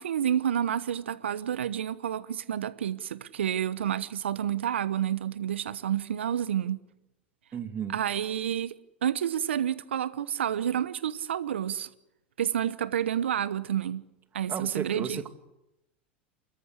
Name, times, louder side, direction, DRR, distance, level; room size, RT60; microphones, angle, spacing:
voice 1, 0.0-6.8 7.9-8.7 9.0-11.9 12.4-14.0 14.3-15.2, right 10 dB, 80° right, 15 dB, 1.0 m, -29 dB
voice 2, 7.5-8.0 14.5-15.3, right 7 dB, 30° right, 7 dB, 2.6 m, -34 dB
29.0 x 14.0 x 8.3 m, 0.89 s
hypercardioid pair, 90°, 6 cm